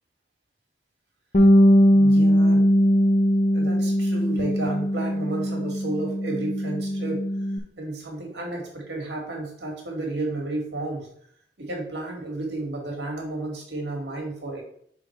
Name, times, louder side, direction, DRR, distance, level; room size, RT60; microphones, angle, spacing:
Bass guitar, 1.3-7.6, equal, 40° left, 0.7 m, -20 dB
voice 1, 1.7-2.9 3.5-7.3 7.8-11.1 11.6-14.6, right 2 dB, 75° right, -1 dB, 2.0 m, -32 dB
6.4 x 3.6 x 4.6 m, 0.67 s
head